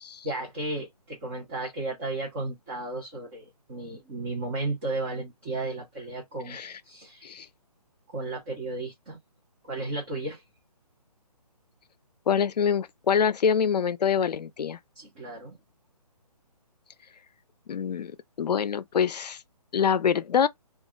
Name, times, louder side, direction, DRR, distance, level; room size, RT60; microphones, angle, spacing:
voice 1, 0.2-6.6 6.8-7.4 8.1-9.2 9.6-10.4 14.9-15.6, right 2 dB, 20° right, 0.7 m, -34 dB
voice 2, 6.5-6.8 7.2-7.5 12.3-14.8 17.7-18.1 18.4-19.4 19.7-20.5, left 7 dB, 85° left, 0.4 m, -25 dB
2.3 x 2.0 x 3.6 m
hypercardioid pair, 160°, 20 cm